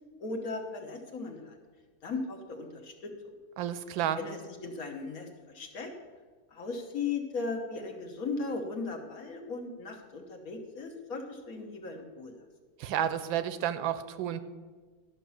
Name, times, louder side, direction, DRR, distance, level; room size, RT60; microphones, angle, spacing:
voice 1, 0.2-1.6 2.0-3.1 4.2-5.3 5.5-5.9 6.5-12.4, left 4 dB, 55° left, 3 dB, 1.4 m, -37 dB
voice 2, 3.6-4.2 12.8-14.4, right 10 dB, 85° right, 13 dB, 1.4 m, -31 dB
11.5 x 5.9 x 7.0 m, 1.4 s
omnidirectional pair, 2.1 m